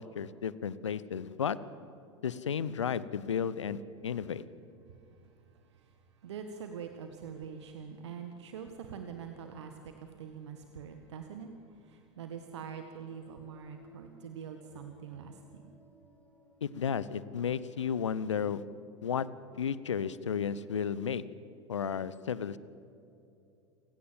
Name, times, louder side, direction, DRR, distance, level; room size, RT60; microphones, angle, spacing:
voice 1, 0.0-1.6 2.2-4.4 16.6-18.6 19.0-19.3 19.6-21.2 21.7-22.6, left 7 dB, 75° left, 18 dB, 0.9 m, -33 dB
voice 2, 4.9-15.7, right 7 dB, 70° right, 6 dB, 1.6 m, -45 dB
sound 1, 12.3-18.4, equal, 10° left, 5.8 m, -60 dB
29.0 x 16.5 x 7.5 m, 2.7 s
figure-of-eight pair, 80°, 15 cm